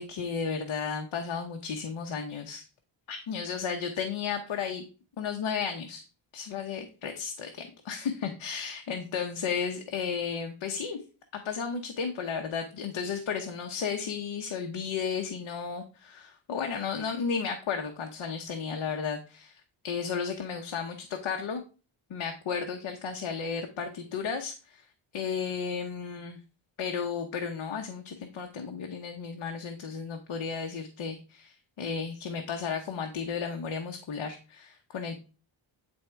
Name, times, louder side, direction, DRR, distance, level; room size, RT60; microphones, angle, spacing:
voice 1, 0.0-2.7 3.1-4.9 5.2-6.0 6.3-11.0 11.4-21.6 22.1-24.8 25.1-26.4 26.8-35.2, left 6 dB, 65° left, 4 dB, 1.1 m, -34 dB
9.3 x 3.6 x 4.5 m, 0.35 s
wide cardioid pair, 120°, 49 cm